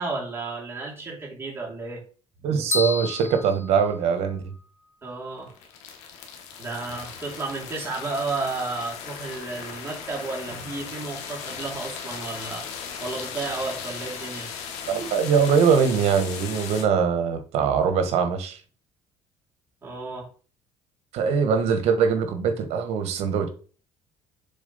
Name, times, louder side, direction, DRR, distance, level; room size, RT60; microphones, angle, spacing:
voice 1, 0.0-2.0 5.0-5.5 6.6-12.7 13.0-14.5 19.8-20.3, right 3 dB, 20° right, 3.0 m, -32 dB
voice 2, 2.4-4.4 14.9-18.6 21.1-23.5, right 6 dB, 70° right, 1.3 m, -22 dB
sound 1, 2.7-4.6, left 3 dB, 20° left, 1.1 m, -31 dB
sound 2, 5.4-16.8, left 7 dB, 90° left, 1.4 m, -37 dB
7.1 x 3.8 x 4.1 m
cardioid pair, 125°, 11 cm